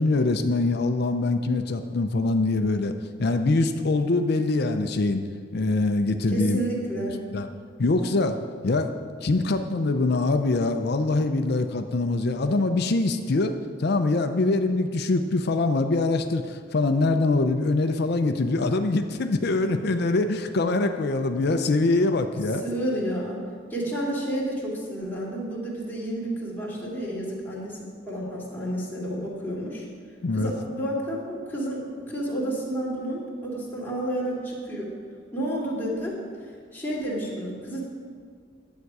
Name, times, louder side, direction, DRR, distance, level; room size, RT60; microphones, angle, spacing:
voice 1, 0.0-2.9 3.2-5.3 5.5-6.6 7.3-7.5 7.8-8.3 8.6-8.9 9.2-13.5 13.8-22.6 30.2-30.5, left 2 dB, 55° left, 7 dB, 0.5 m, -23 dB
voice 2, 6.3-7.2 22.6-23.4 23.7-29.8 30.3-34.9 35.3-36.2 36.7-37.9, right 1 dB, 10° left, -6 dB, 2.3 m, -30 dB
10.5 x 8.1 x 4.8 m, 2.1 s
head